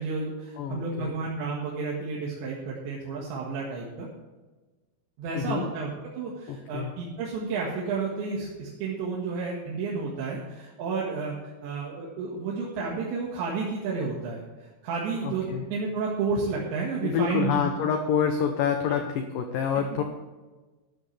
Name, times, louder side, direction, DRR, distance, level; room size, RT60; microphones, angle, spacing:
voice 1, 0.0-4.1 5.2-5.9 6.2-11.4 11.6-14.4 14.8-17.7 18.9-19.0 19.7-20.0, right 4 dB, 80° right, -4 dB, 4.1 m, -31 dB
voice 2, 0.6-1.1 5.3-5.6 6.5-6.9 15.2-15.7 17.0-20.0, left 7 dB, 80° left, 5 dB, 1.9 m, -27 dB
13.0 x 12.0 x 3.4 m, 1.2 s
omnidirectional pair, 5.2 m